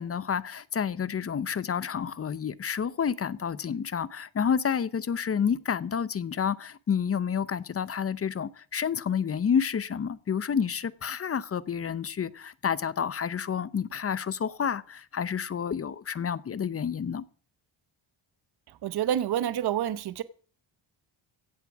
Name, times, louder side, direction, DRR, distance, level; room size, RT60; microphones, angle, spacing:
voice 1, 0.0-17.2, left 7 dB, 30° left, 0.7 m, -29 dB
voice 2, 18.8-20.2, right 10 dB, 50° right, 0.9 m, -28 dB
16.0 x 8.2 x 7.2 m
cardioid pair, 140°, 49 cm